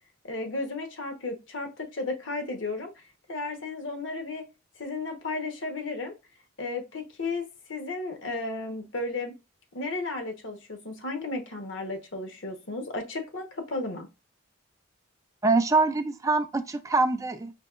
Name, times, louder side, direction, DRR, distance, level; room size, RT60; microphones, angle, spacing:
voice 1, 0.2-2.9 3.3-4.4 4.8-6.1 6.6-9.4 9.7-14.1, left 3 dB, 65° left, 1.0 m, -34 dB
voice 2, 15.4-17.5, right 3 dB, 15° right, 0.3 m, -24 dB
5.2 x 2.8 x 2.4 m
head